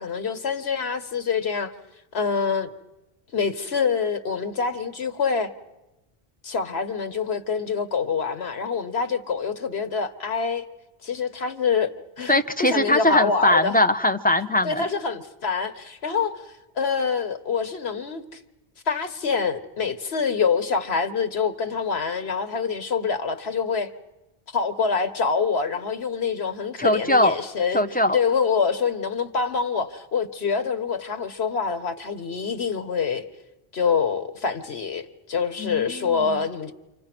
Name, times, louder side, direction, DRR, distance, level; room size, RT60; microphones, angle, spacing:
voice 1, 0.0-1.7 2.1-2.7 3.3-5.5 6.4-10.6 11.0-11.9 12.2-13.8 14.6-16.3 16.8-18.2 18.9-23.9 24.5-27.8 28.1-33.2 33.7-36.7, left 5 dB, 90° left, 1.6 m, -25 dB
voice 2, 12.3-14.9 26.8-27.3 27.7-28.2 35.6-36.4, left 1 dB, 10° left, 1.0 m, -21 dB
28.5 x 26.0 x 6.1 m
omnidirectional pair, 1.0 m